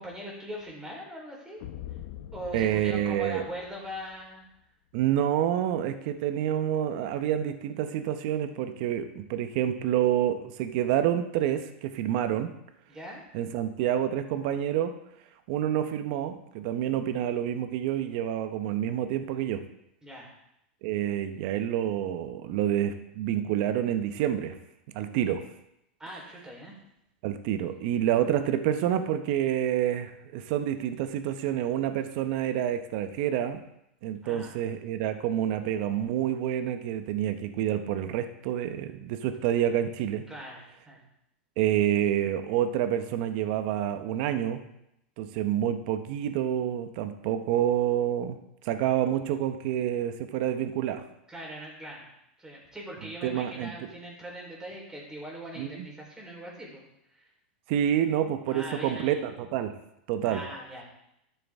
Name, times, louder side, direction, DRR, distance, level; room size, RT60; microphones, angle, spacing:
voice 1, 0.0-1.6 2.3-4.5 12.9-13.2 20.0-20.3 26.0-26.7 34.2-34.5 40.3-41.0 51.3-52.1 52.4-56.8 57.1-57.2 58.5-59.2 60.2-60.8, equal, 10° right, -3 dB, 3.8 m, -41 dB
sound 1, 1.6-4.2, left 12 dB, 60° left, 0.8 m, -44 dB
voice 2, 2.5-3.4 4.9-12.5 13.3-14.9 15.5-19.6 20.8-24.6 24.9-25.4 27.2-33.6 34.0-40.3 41.6-44.7 45.2-48.4 48.6-51.0 53.2-53.7 55.6-55.9 57.7-59.8 60.1-60.4, right 10 dB, 55° right, 9 dB, 0.9 m, -28 dB
13.0 x 6.9 x 3.6 m, 0.81 s
hypercardioid pair, 125°, 6 cm